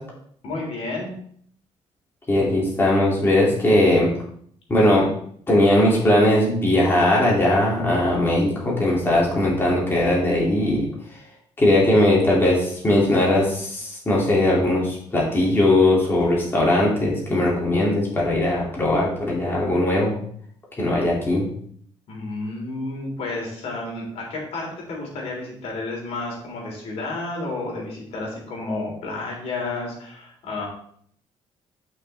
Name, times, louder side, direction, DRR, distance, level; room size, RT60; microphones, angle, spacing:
voice 1, 0.4-1.1 22.1-30.7, left 2 dB, 70° left, -2 dB, 3.6 m, -31 dB
voice 2, 2.3-4.1 4.7-5.0 5.5-10.8 11.6-20.1 20.8-21.5, left 1 dB, 20° left, -4 dB, 2.6 m, -19 dB
11.0 x 6.1 x 3.4 m, 0.62 s
cardioid pair, 120°, 11 cm